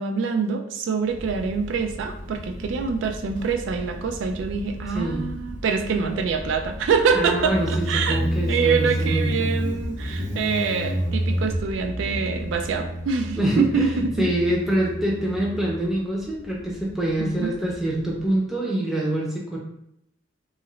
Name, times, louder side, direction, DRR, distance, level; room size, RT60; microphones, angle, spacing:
voice 1, 0.0-8.2 8.5-14.3 17.2-17.5, right 5 dB, 75° right, 5 dB, 0.3 m, -25 dB
Motorcycle, 1.1-18.3, equal, 45° right, 0.9 m, -31 dB
voice 2, 4.9-5.3 7.1-9.5 13.4-19.6, right 1 dB, ahead, -3 dB, 0.5 m, -25 dB
2.8 x 2.4 x 3.0 m, 0.76 s
head